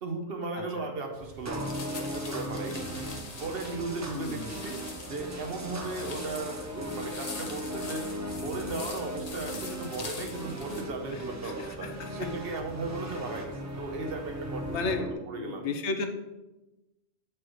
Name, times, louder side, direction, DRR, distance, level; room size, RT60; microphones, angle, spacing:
voice 1, 0.0-4.8 5.1-8.0 8.3-15.6, right 3 dB, 60° right, 3 dB, 1.0 m, -36 dB
sound 1, 1.1-15.0, right 5 dB, 85° right, 1.0 m, -48 dB
sound 2, 1.4-15.1, equal, 25° right, 0.4 m, -38 dB
sound 3, 1.5-10.8, left 3 dB, 40° left, 0.8 m, -44 dB
voice 2, 4.1-4.5 11.1-12.3 13.1-13.2 14.7-16.1, left 4 dB, 80° left, 5 dB, 1.0 m, -34 dB
7.4 x 4.7 x 3.1 m, 1.0 s
omnidirectional pair, 1.2 m